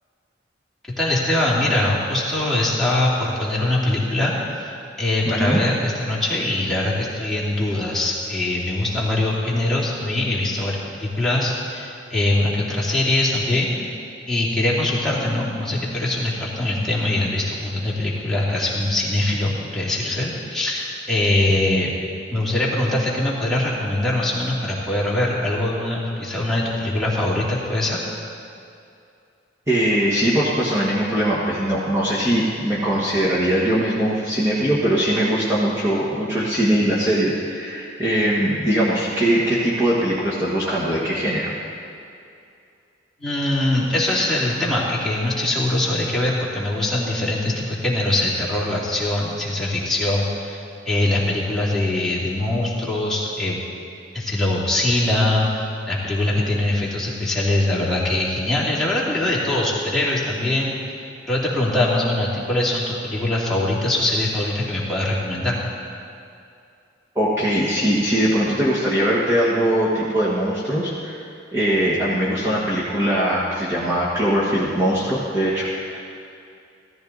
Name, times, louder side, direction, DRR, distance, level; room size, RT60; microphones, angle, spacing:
voice 1, 1.0-13.9 14.3-21.9 22.3-28.0 43.2-53.6 54.1-60.7 61.3-65.6, left 1 dB, ahead, -7 dB, 2.5 m, -22 dB
voice 2, 5.2-5.6 29.7-41.5 67.1-71.2 71.5-76.0, right 1 dB, 15° right, -8 dB, 1.6 m, -21 dB
16.0 x 14.0 x 4.0 m, 2.5 s
head